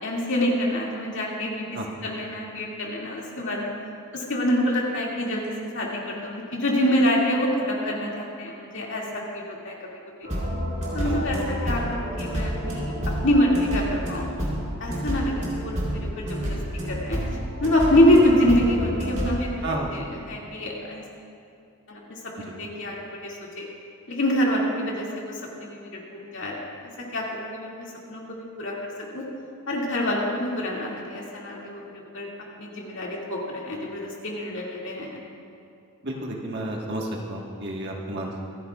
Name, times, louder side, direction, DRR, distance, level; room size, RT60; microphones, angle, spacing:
voice 1, 0.0-1.7 2.0-3.7 4.1-9.9 10.9-12.9 13.2-14.4 14.8-16.6 16.9-17.2 17.6-19.5 19.9-21.0 21.9-23.7 24.1-29.2 29.7-32.3 32.6-35.2, left 1 dB, 55° left, -3 dB, 2.3 m, -26 dB
sound 1, 10.2-19.3, equal, 35° right, 3.4 m, -29 dB
voice 2, 11.0-11.4 19.6-20.2 36.0-38.5, right 1 dB, 50° right, -1 dB, 1.5 m, -32 dB
26.5 x 10.5 x 2.4 m, 2.4 s
head